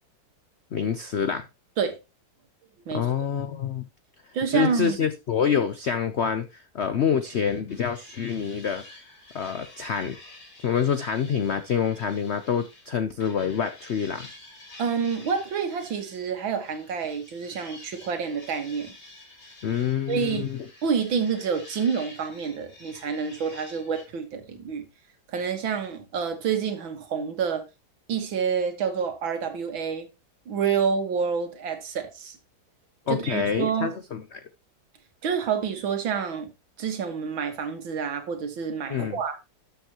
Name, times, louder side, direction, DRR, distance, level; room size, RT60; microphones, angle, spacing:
voice 1, 0.7-1.5 2.9-3.9 4.5-9.0 9.3-10.2 10.6-14.3 19.6-20.6 33.1-34.4 38.9-39.2, left 7 dB, 75° left, 0.6 m, -27 dB
voice 2, 4.3-5.0 14.8-18.9 20.1-20.5 20.8-24.8 25.3-27.6 28.1-30.1 30.5-32.4 33.1-33.9 35.2-36.5 36.8-39.4, right 6 dB, 90° right, 2.3 m, -28 dB
sound 1, 7.2-12.9 13.2-24.1, left 2 dB, 35° left, 2.8 m, -49 dB
12.5 x 7.0 x 2.9 m
omnidirectional pair, 2.1 m